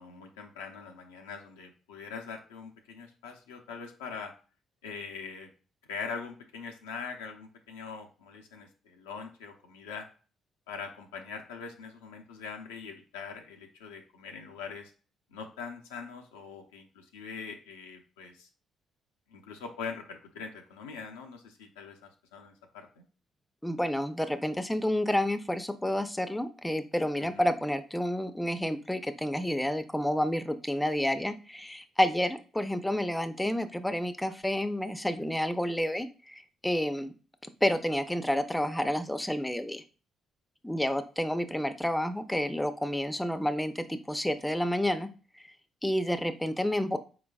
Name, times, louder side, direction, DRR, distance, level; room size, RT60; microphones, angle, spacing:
voice 1, 0.0-4.3 4.8-5.5 5.9-10.1 10.7-14.9 15.3-18.5 19.3-23.0 27.2-27.5, left 5 dB, 90° left, 3 dB, 0.6 m, -42 dB
voice 2, 23.6-37.1 37.6-39.8 40.6-45.1 45.4-45.5 45.8-47.0, left 1 dB, 5° left, 11 dB, 0.5 m, -30 dB
4.3 x 4.0 x 2.3 m, 0.37 s
hypercardioid pair, 50°, 0 cm